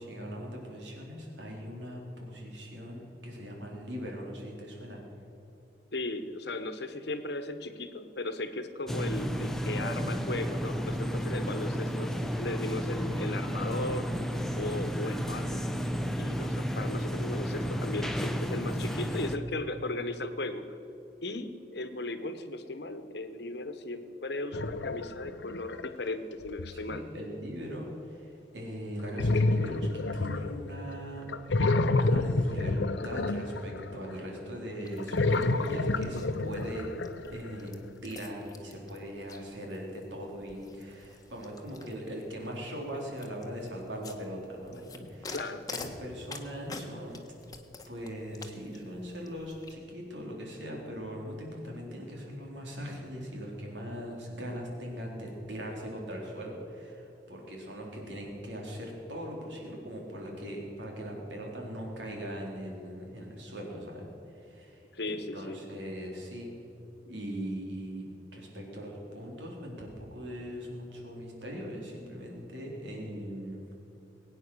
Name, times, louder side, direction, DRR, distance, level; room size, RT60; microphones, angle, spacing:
voice 1, 0.0-5.0 26.7-31.3 32.0-32.8 33.0-36.9 37.3-37.7 38.0-45.4 45.7-47.2 47.9-66.5 67.1-68.1 68.3-73.6, equal, 80° right, -1 dB, 3.8 m, -40 dB
voice 2, 5.9-12.1 12.4-14.1 14.5-15.6 16.2-20.8 21.2-27.0 45.3-45.6 64.9-65.6, left 2 dB, 65° left, 10 dB, 1.2 m, -36 dB
sound 1, 8.9-19.4, equal, ahead, 0.9 m, -32 dB
sound 2, 24.5-25.9 26.4-26.9 29.2-30.9 31.3-34.2 34.9-37.5, left 2 dB, 85° left, 0.7 m, -29 dB
sound 3, 34.8-49.7, left 4 dB, 20° left, 1.2 m, -49 dB
21.5 x 9.4 x 6.4 m, 3.0 s
head